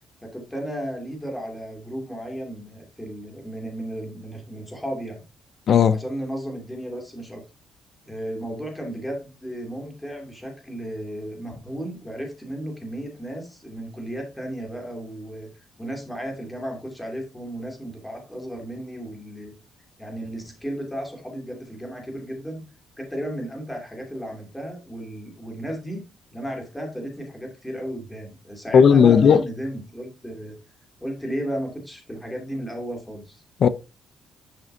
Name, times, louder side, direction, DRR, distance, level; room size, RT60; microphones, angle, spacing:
voice 1, 0.2-5.2 5.9-7.4 8.0-15.5 15.8-19.5 20.0-22.6 23.0-26.0 26.3-30.6 31.0-33.4, equal, 5° left, 2.6 m, -34 dB
voice 2, 5.7-6.0 28.7-29.4 33.6-33.7, left 7 dB, 40° left, 0.5 m, -14 dB
10.5 x 6.7 x 2.7 m
cardioid pair, 170°, 0 cm